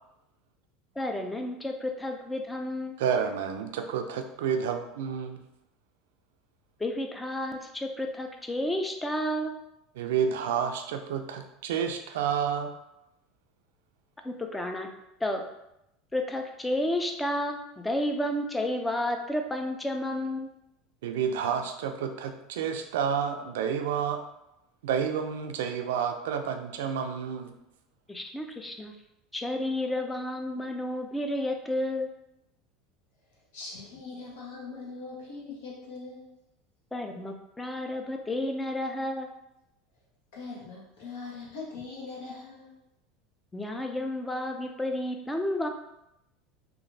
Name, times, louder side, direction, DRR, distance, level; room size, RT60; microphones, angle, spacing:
voice 1, 1.0-3.0 6.8-9.6 14.2-14.9 15.2-15.4 16.1-20.5 28.1-28.9 29.3-32.1 36.9-39.3 43.5-45.7, left 1 dB, 10° left, 4 dB, 0.4 m, -31 dB
voice 2, 3.0-5.4 10.0-12.7 21.0-24.2 24.8-27.5, right 7 dB, 85° right, 6 dB, 0.3 m, -30 dB
voice 3, 33.5-36.2 40.3-42.7, left 4 dB, 85° left, -4 dB, 1.0 m, -41 dB
3.0 x 2.5 x 2.6 m, 0.85 s
supercardioid pair, 120°, 0 cm